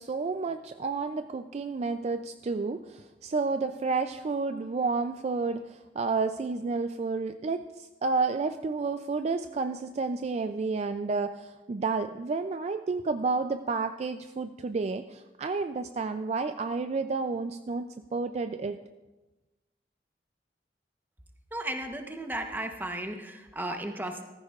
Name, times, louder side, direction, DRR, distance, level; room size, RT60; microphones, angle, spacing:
voice 1, 0.0-18.8, right 4 dB, 40° right, 9 dB, 0.3 m, -31 dB
voice 2, 21.5-24.2, right 1 dB, 10° right, 4 dB, 0.9 m, -35 dB
14.5 x 14.0 x 2.4 m, 1.1 s
head